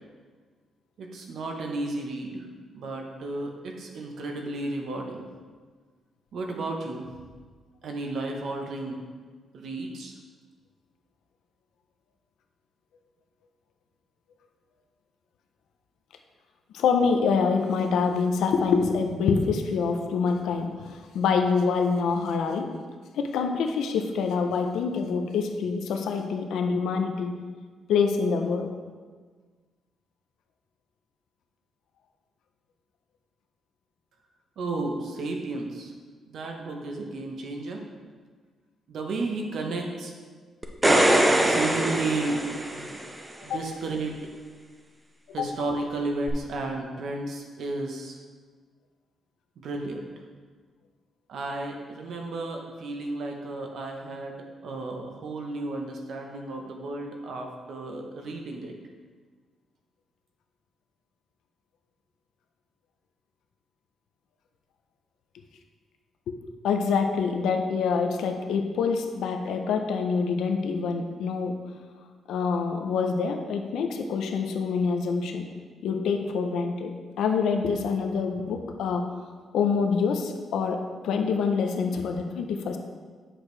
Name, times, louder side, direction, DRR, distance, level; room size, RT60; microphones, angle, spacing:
voice 1, 1.0-2.5 2.7-5.3 6.3-7.2 7.8-9.0 9.5-10.2 34.6-35.9 36.3-37.8 38.9-40.1 41.4-42.4 42.7-43.0 43.4-44.2 45.3-48.2 49.6-50.1 51.3-58.7, right 2 dB, 55° right, 2 dB, 0.9 m, -33 dB
voice 2, 16.7-22.7 23.1-27.4 27.9-28.7 43.5-43.6 45.4-45.5 66.3-66.4 66.6-71.6 72.3-75.5 75.8-79.1 79.5-82.8, left 5 dB, 80° left, 4 dB, 0.6 m, -26 dB
sound 1, 40.6-43.2 46.3-46.4, right 1 dB, 10° right, 0.5 m, -22 dB
7.7 x 6.4 x 3.3 m, 1.5 s
cardioid pair, 180°, 0 cm